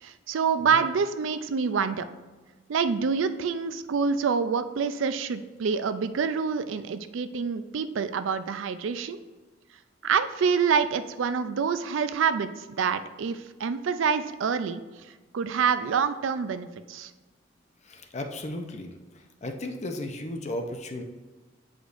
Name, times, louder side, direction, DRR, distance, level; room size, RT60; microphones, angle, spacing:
voice 1, 0.0-2.1 2.7-9.2 10.0-14.8 15.3-17.1, right 6 dB, 75° right, 11 dB, 0.4 m, -27 dB
voice 2, 17.8-18.9 19.4-21.0, left 1 dB, 35° left, 5 dB, 0.6 m, -35 dB
8.0 x 5.0 x 2.5 m, 1.3 s
head